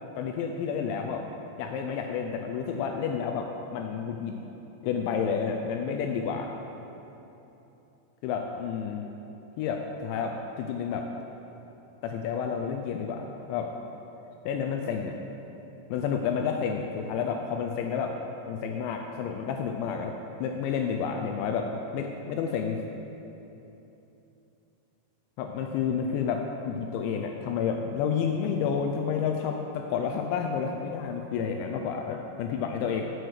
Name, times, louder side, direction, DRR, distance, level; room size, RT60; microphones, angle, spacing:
voice 1, 0.2-1.3 1.6-4.4 4.8-6.5 8.2-9.0 9.6-11.1 12.0-13.7 14.5-15.2 15.9-18.1 18.5-20.1 20.4-21.7 21.9-22.8 25.4-33.1, left 6 dB, 90° left, 3 dB, 2.5 m, -30 dB
9.5 x 7.9 x 6.5 m, 3.0 s
omnidirectional pair, 5.8 m